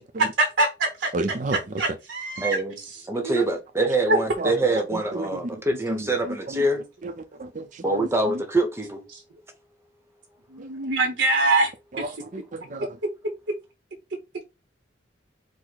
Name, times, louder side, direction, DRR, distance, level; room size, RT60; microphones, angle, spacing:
voice 1, 0.2-1.1 1.5-2.6 3.2-3.4 4.1-4.2 9.1-9.2 10.5-11.7 12.0-12.1, right 2 dB, 70° right, 0.9 m, -23 dB
voice 2, 1.1-1.6 4.4-4.5 4.9-5.3 5.9-6.6 7.0-7.1 7.4-8.1 11.9-12.9, right 2 dB, 45° right, 0.5 m, -31 dB
voice 3, 2.4-2.8 3.1-6.8 7.8-9.0, right 2 dB, 15° right, 0.8 m, -25 dB
4.7 x 2.1 x 3.9 m
head